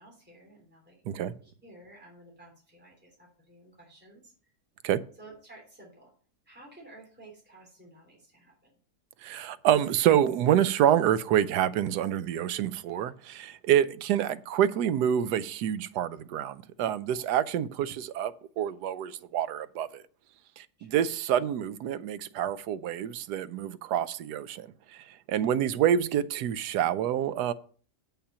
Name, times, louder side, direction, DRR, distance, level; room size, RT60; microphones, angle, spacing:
voice 1, 0.0-4.5 5.2-6.1 6.4-8.7 17.1-17.3 20.8-21.1, right 2 dB, 5° right, 3.4 m, -53 dB
voice 2, 9.2-20.0 20.6-27.5, right 10 dB, 85° right, 1.2 m, -27 dB
8.6 x 5.8 x 5.6 m
omnidirectional pair, 1.7 m